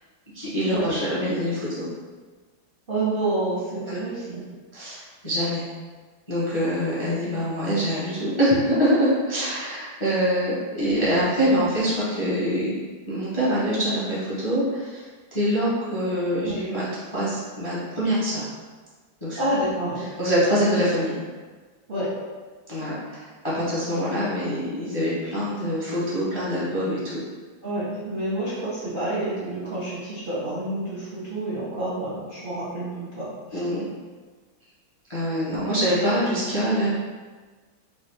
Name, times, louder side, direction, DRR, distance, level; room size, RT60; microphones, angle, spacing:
voice 1, 0.3-1.9 3.8-4.0 4.7-5.7 6.3-12.8 13.1-15.0 15.3-16.9 17.1-18.4 19.2-19.4 20.2-21.2 22.7-27.2 33.5-33.8 35.1-36.9, equal, 30° left, -9 dB, 0.5 m, -24 dB
voice 2, 2.9-4.4 16.4-16.6 19.3-20.0 21.9-22.1 27.6-33.7, right 1 dB, 50° right, -10 dB, 0.6 m, -28 dB
4.6 x 2.5 x 3.3 m, 1.4 s
omnidirectional pair, 2.2 m